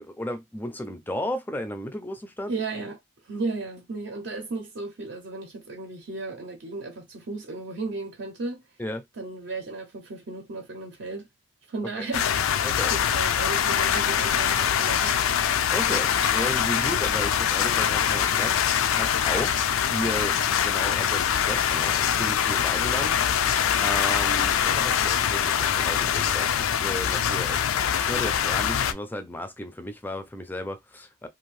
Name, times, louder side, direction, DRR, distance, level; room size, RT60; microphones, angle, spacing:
voice 1, 0.0-2.5 8.8-9.0 12.0-12.1 12.6-12.9 15.7-18.6 19.0-23.2 23.8-31.3, left 1 dB, 10° left, 0.4 m, -34 dB
voice 2, 2.5-3.0 3.2-8.6 9.2-11.3 11.7-12.3 12.9-15.2, right 3 dB, 60° right, 0.6 m, -34 dB
sound 1, 12.1-28.9, left 9 dB, 90° left, 0.4 m, -24 dB
2.6 x 2.5 x 3.1 m
head